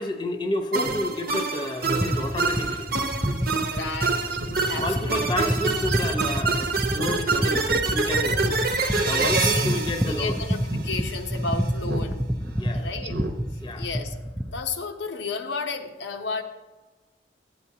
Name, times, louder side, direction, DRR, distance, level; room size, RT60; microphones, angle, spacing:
voice 1, 0.0-2.9 4.8-8.3 9.1-10.4 12.6-12.9 13.6-13.8, left 1 dB, 25° left, 4 dB, 0.8 m, -30 dB
sound 1, 0.7-11.1, right 4 dB, 50° right, 0.9 m, -26 dB
Speech synthesizer, 0.8-1.0 1.4-1.5 1.8-2.2 2.6-2.7 3.2-3.4 3.8-3.9 4.3-4.7 5.6-5.9 6.9-7.3 7.5-7.6 8.2-8.6 8.8-9.1 9.5-9.8 10.2-10.3 10.7-10.9 11.8-12.1 12.4-12.6 13.0-13.3 13.7-13.8, right 1 dB, 75° right, 1.0 m, -32 dB
sound 2, 2.0-14.6, equal, 5° right, 0.5 m, -29 dB
voice 2, 3.6-4.3 4.7-5.6 9.0-12.2 12.7-13.3 13.7-14.1 14.5-16.4, left 4 dB, 80° left, 4 dB, 0.8 m, -33 dB
13.5 x 8.5 x 2.8 m, 1.2 s
head